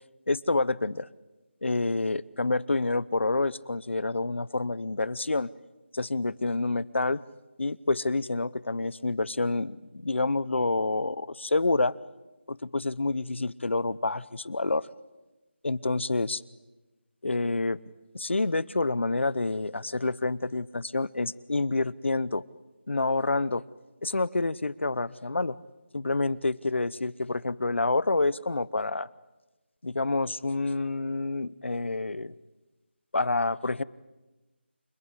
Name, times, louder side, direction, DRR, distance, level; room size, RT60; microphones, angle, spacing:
voice 1, 0.3-1.1 1.6-5.5 5.9-7.2 7.6-12.0 12.5-14.9 15.6-16.4 17.2-17.8 18.1-22.4 22.9-23.6 24.0-25.6 25.9-29.1 29.8-32.3 33.1-33.8, left 2 dB, 85° left, 21 dB, 0.9 m, -28 dB
28.0 x 20.5 x 8.2 m, 1.1 s
figure-of-eight pair, 175°, 6 cm